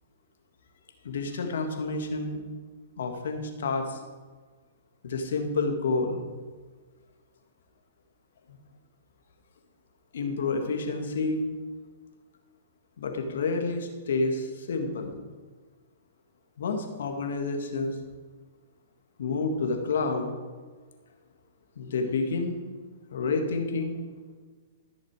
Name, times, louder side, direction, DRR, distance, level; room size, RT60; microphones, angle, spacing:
voice 1, 1.0-2.4 3.0-4.0 5.0-6.2 10.1-11.4 13.0-15.2 16.6-18.0 19.2-20.3 21.8-22.6 23.1-23.9, left 3 dB, 75° left, 4 dB, 1.8 m, -29 dB
14.5 x 6.4 x 4.9 m, 1.4 s
hypercardioid pair, 135°, 0 cm